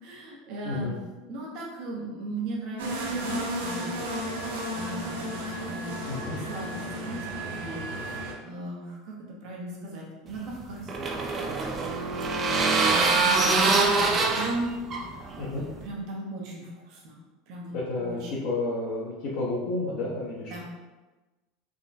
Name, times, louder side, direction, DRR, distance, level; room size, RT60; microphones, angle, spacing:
voice 1, 0.0-1.0 1.3-4.0 4.3-6.1 6.5-11.1 12.3-14.7 15.0-15.4 15.8-17.2 17.5-18.5 20.5-20.6, right 2 dB, 60° right, -2 dB, 0.9 m, -38 dB
voice 2, 0.6-1.0 6.1-6.4 12.5-12.9 14.2-14.5 15.4-15.6 17.7-20.6, left 2 dB, 65° left, -8 dB, 0.7 m, -32 dB
sound 1, 2.8-8.3, right 1 dB, 90° right, 0.5 m, -33 dB
sound 2, 10.3-15.9, right 3 dB, 30° right, 0.4 m, -25 dB
3.6 x 2.2 x 2.6 m, 1.2 s
supercardioid pair, 115°, 0 cm